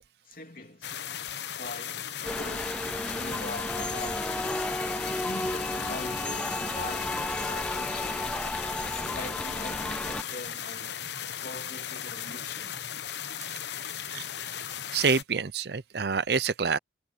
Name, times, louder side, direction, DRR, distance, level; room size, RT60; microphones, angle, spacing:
voice 1, 0.3-0.9 1.6-2.8 3.1-4.4 5.2-8.4 9.0-11.0 11.4-12.9, left 2 dB, 50° left, 3.2 m, -42 dB
sound 1, 0.8-15.2, left 9 dB, 70° left, 1.0 m, -37 dB
sound 2, 2.2-10.2, left 1 dB, 5° left, 0.3 m, -33 dB
voice 2, 14.9-16.8, right 5 dB, 60° right, 0.6 m, -27 dB
head